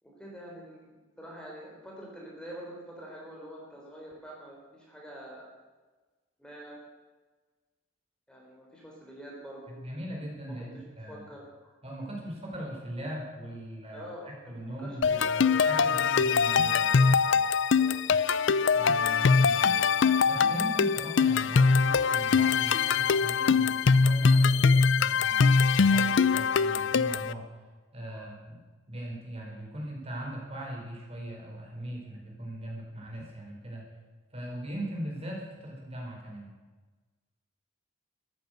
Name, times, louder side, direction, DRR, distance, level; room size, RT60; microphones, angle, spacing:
voice 1, 0.0-5.5 6.4-6.8 8.3-9.8 10.4-11.8 13.9-16.3 17.7-18.0 28.1-28.2, equal, 5° left, -3 dB, 3.6 m, -46 dB
voice 2, 9.7-11.2 11.8-17.0 18.7-19.8 20.2-27.5 27.9-28.6 28.9-33.9 34.3-36.5, right 1 dB, 30° right, -1 dB, 4.6 m, -39 dB
sound 1, 15.0-27.3, left 5 dB, 65° left, 0.5 m, -23 dB
14.0 x 12.0 x 7.8 m, 1.3 s
head